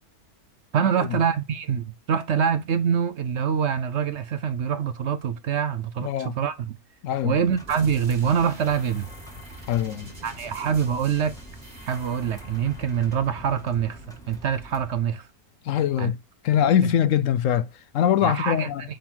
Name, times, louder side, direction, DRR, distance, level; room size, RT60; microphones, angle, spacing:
voice 1, 0.7-6.8 7.2-9.1 10.2-11.3 11.9-14.0 14.3-15.3 16.0-16.1 18.2-18.7, right 7 dB, 65° right, 0.8 m, -25 dB
voice 2, 6.0-6.4 7.0-7.4 9.7-10.1 15.6-16.2 16.4-18.8, left 10 dB, 70° left, 0.9 m, -23 dB
sound 1, 7.4-15.0, right 3 dB, ahead, 1.7 m, -46 dB
sound 2, 7.7-15.2, left 1 dB, 30° right, 2.1 m, -45 dB
8.5 x 3.8 x 4.5 m
omnidirectional pair, 1.5 m